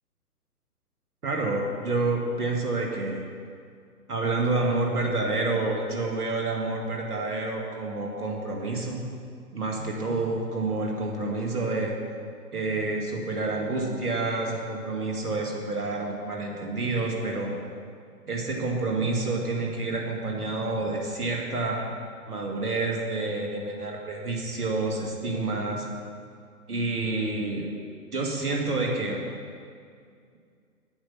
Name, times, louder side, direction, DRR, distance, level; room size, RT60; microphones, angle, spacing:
voice 1, 1.2-3.2 4.1-9.0 9.5-11.9 12.5-17.5 18.3-21.8 22.3-25.9 26.7-27.7 28.1-29.2, right 3 dB, 70° right, 0 dB, 2.4 m, -28 dB
8.6 x 8.4 x 5.9 m, 2.2 s
figure-of-eight pair, 135°, 47 cm